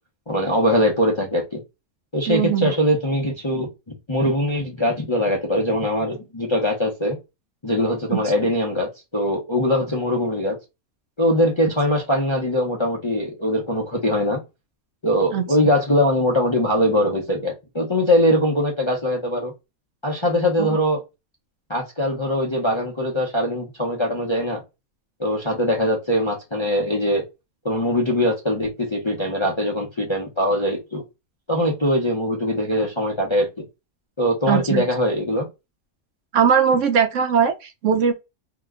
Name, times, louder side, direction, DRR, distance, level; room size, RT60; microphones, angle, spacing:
voice 1, 0.3-1.6 2.1-3.7 4.1-7.2 7.6-10.6 11.2-14.4 15.0-19.5 20.0-21.0 21.7-24.6 25.2-27.2 27.6-31.0 31.5-33.5 34.2-35.5, equal, 30° left, 0.6 m, -22 dB
voice 2, 2.3-2.7 8.1-8.2 15.3-15.4 20.6-20.7 34.5-34.8 36.3-38.1, right 7 dB, 65° right, 0.9 m, -19 dB
2.9 x 2.2 x 3.5 m
omnidirectional pair, 1.5 m